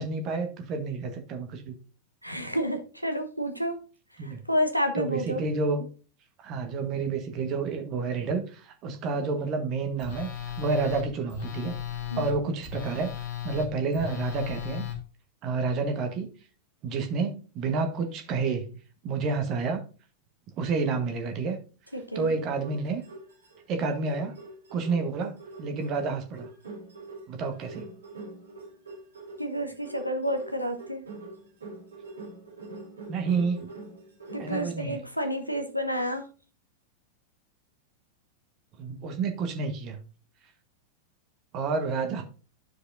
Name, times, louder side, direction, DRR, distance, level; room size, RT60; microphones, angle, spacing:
voice 1, 0.0-1.8 4.2-4.4 4.9-5.9 6.4-11.7 12.2-13.1 13.4-14.9 15.4-16.3 16.8-18.7 19.0-19.8 20.6-21.6 22.1-23.0 23.7-24.4 24.7-26.5 27.3-27.8 33.1-33.7 34.4-35.0 38.8-40.0 41.5-42.2, right 4 dB, 35° right, 6 dB, 1.2 m, -29 dB
voice 2, 2.2-3.8 4.2-5.4 12.1-12.2 21.9-22.3 29.4-31.0 34.3-36.2, equal, 90° right, 5 dB, 0.9 m, -30 dB
Telephone, 10.0-15.0, left 9 dB, 50° left, 1.3 m, -35 dB
sound 1, 22.6-23.6 24.0-34.6, right 2 dB, 75° right, 2.4 m, -44 dB
12.0 x 4.9 x 2.6 m, 0.36 s
figure-of-eight pair, 90°, 0 cm